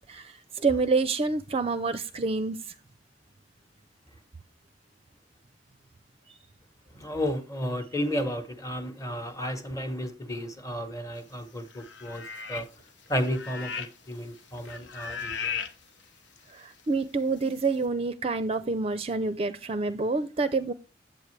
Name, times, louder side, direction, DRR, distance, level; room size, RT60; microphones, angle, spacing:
voice 1, 0.0-2.6 16.5-20.7, right 3 dB, 35° right, 0.5 m, -27 dB
voice 2, 6.9-12.7 13.1-15.5, equal, 20° left, 1.1 m, -33 dB
sound 1, 11.7-12.8 13.1-14.1 14.4-15.7 16.4-16.5, left 6 dB, 75° left, 0.9 m, -36 dB
8.1 x 8.0 x 3.2 m
head